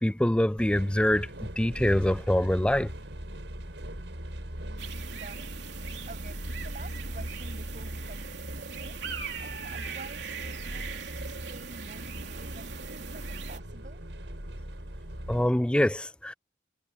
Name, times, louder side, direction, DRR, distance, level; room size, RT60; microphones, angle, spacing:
voice 1, 0.0-2.9 15.3-16.3, left 1 dB, 5° left, 0.4 m, -25 dB
sound 1, 0.6-15.5, equal, 85° right, 5.8 m, -40 dB
voice 2, 4.7-9.0 9.4-14.0, right 2 dB, 45° right, 7.8 m, -49 dB
sound 2, 4.8-13.6, right 6 dB, 70° right, 3.6 m, -41 dB
head